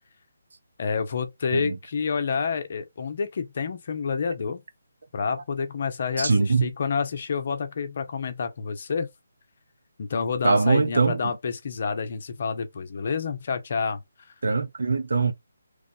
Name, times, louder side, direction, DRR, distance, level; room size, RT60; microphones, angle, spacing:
voice 1, 0.8-4.6 5.1-9.1 10.0-14.0, left 5 dB, 50° left, 0.7 m, -28 dB
voice 2, 6.2-6.7 10.4-11.3 14.4-15.3, right 4 dB, 65° right, 0.6 m, -22 dB
3.1 x 2.4 x 3.7 m
figure-of-eight pair, 150°, 0 cm